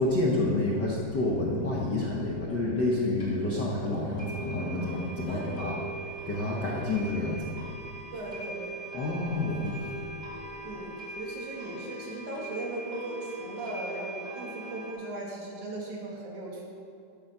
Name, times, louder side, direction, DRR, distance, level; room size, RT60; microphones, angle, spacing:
voice 1, 0.0-5.7 6.2-7.6 8.9-9.9, left 2 dB, 50° left, -4 dB, 1.3 m, -29 dB
sound 1, 2.9-3.0 3.2-3.3 3.7-3.8 4.2-14.9, right 2 dB, 20° left, 2.9 m, -41 dB
voice 2, 5.3-5.8 8.1-8.8 10.6-16.6, right 2 dB, 65° right, -3 dB, 3.7 m, -38 dB
13.0 x 11.0 x 5.8 m, 2.5 s
omnidirectional pair, 3.8 m